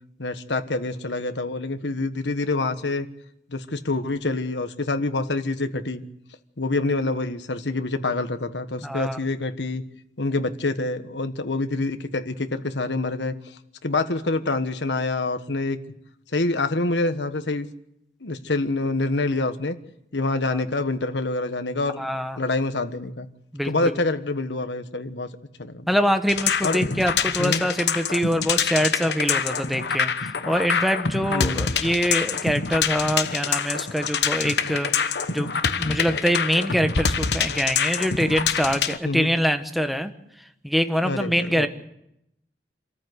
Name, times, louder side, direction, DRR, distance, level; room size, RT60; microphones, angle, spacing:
voice 1, 0.2-3.1 3.5-6.0 6.6-9.8 10.2-13.3 13.8-15.8 16.3-17.7 18.2-19.8 20.1-22.0 22.4-23.3 23.6-25.3 25.6-25.9 26.6-27.0 27.4-27.6 31.3-31.7 39.0-39.3 41.0-41.7, left 2 dB, 85° left, 9 dB, 1.4 m, -26 dB
voice 2, 8.8-9.2 20.4-20.6 22.0-22.4 23.5-23.7 25.9-35.5 35.8-40.1 40.6-41.7, equal, ahead, 7 dB, 1.3 m, -24 dB
sound 1, 26.3-39.0, left 6 dB, 70° left, 1.1 m, -26 dB
27.0 x 14.0 x 8.1 m, 0.81 s
head